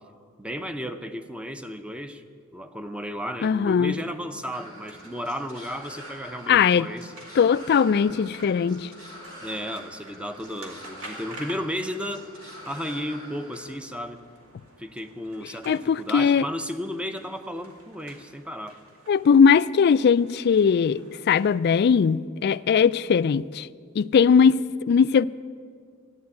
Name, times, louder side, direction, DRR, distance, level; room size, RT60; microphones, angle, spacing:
voice 1, 0.4-2.2 2.5-7.1 9.4-12.3 12.7-14.2 14.8-18.8, equal, 5° right, 0.6 m, -34 dB
voice 2, 3.4-4.0 6.5-6.9 7.4-8.9 15.7-16.4 19.1-23.7 24.0-25.3, left 6 dB, 50° left, 0.3 m, -20 dB
sound 1, 4.5-13.7, equal, 75° right, 3.4 m, -45 dB
sound 2, 4.7-21.5, right 2 dB, 90° right, 2.4 m, -51 dB
12.5 x 9.5 x 9.6 m
head